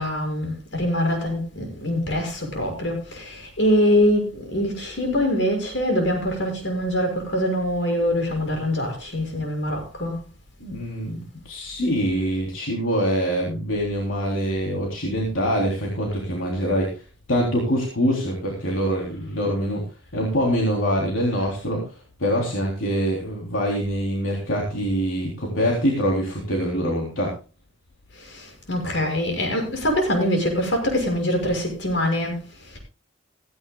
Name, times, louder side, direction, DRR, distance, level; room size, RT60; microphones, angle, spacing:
voice 1, 0.0-10.2 28.1-32.8, left 1 dB, 70° left, 6.5 m, -24 dB
voice 2, 10.6-17.0 17.3-19.8 20.1-21.9 22.2-27.4, equal, 85° left, 3.6 m, -24 dB
16.5 x 16.0 x 2.3 m
head